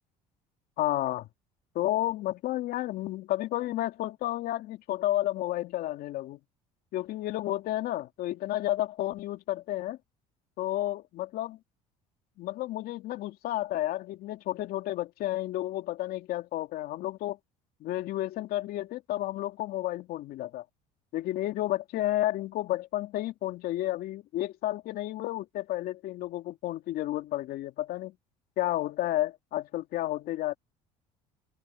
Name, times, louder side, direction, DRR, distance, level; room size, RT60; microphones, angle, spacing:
voice 1, 0.8-1.3 1.7-6.4 6.9-10.0 10.6-11.6 12.4-17.4 17.8-20.6 21.1-28.2 28.6-30.5, left 14 dB, 65° left, 2.8 m, -31 dB
supercardioid pair, 85°, 17 cm